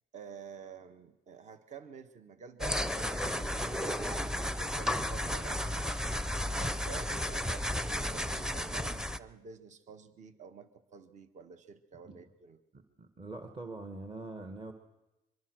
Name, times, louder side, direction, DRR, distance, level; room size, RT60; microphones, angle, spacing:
voice 1, 0.1-4.2 4.5-7.7 7.9-12.6, right 6 dB, 45° right, 9 dB, 1.6 m, -50 dB
sound 1, 2.6-9.2, left 1 dB, 5° right, 0.8 m, -33 dB
voice 2, 12.7-14.7, right 2 dB, 30° right, 6 dB, 2.0 m, -43 dB
24.0 x 23.0 x 6.5 m, 0.95 s
cardioid pair, 110°, 17 cm